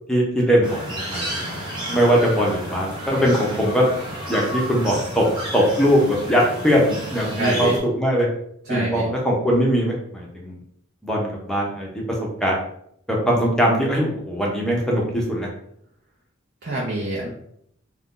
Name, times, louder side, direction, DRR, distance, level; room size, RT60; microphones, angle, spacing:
voice 1, 0.1-1.5 1.9-3.9 4.3-5.3 5.5-8.3 8.7-10.6 11.0-11.9 12.4-12.5 13.1-15.5, equal, 5° left, -3 dB, 0.6 m, -21 dB
sound 1, 0.6-7.8, right 1 dB, 25° right, 1.0 m, -31 dB
voice 2, 7.4-7.8 8.7-9.1 16.6-17.3, right 2 dB, 50° right, -4 dB, 0.6 m, -25 dB
2.5 x 2.3 x 3.7 m, 0.70 s
head